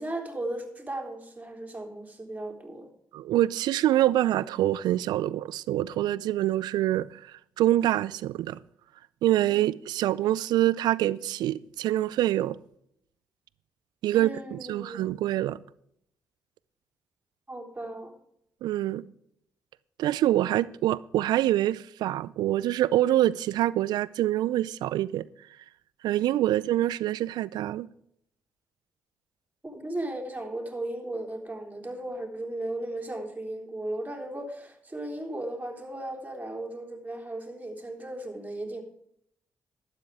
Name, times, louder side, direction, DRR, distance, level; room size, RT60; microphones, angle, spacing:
voice 1, 0.0-2.9 14.1-15.0 17.5-18.1 29.6-38.8, right 1 dB, 20° right, 3.5 m, -36 dB
voice 2, 3.1-8.6 9.2-12.6 14.0-15.6 18.6-19.0 20.0-25.2 26.0-27.9, right 13 dB, 75° right, 0.4 m, -25 dB
12.5 x 9.4 x 4.9 m
hypercardioid pair, 40°, 7 cm